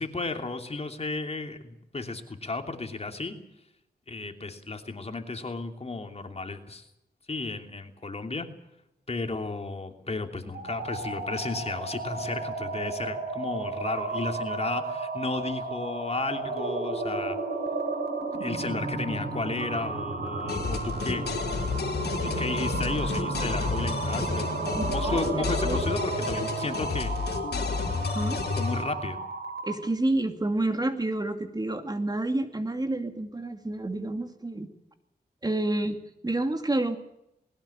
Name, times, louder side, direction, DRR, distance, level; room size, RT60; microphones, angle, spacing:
voice 1, 0.0-3.4 4.1-6.8 7.3-8.5 9.1-17.4 18.4-21.2 22.2-27.1 28.6-29.2, left 3 dB, 40° left, 5 dB, 2.9 m, -33 dB
sound 1, 10.4-29.9, right 3 dB, 80° right, 7.9 m, -33 dB
sound 2, 20.5-28.8, left 4 dB, 90° left, 3.5 m, -31 dB
voice 2, 24.7-25.8 28.1-28.4 29.6-34.7 35.4-36.0 36.2-37.0, right 2 dB, 25° right, 7 dB, 2.3 m, -29 dB
21.0 x 18.0 x 8.6 m, 0.85 s
cardioid pair, 75°, 16 cm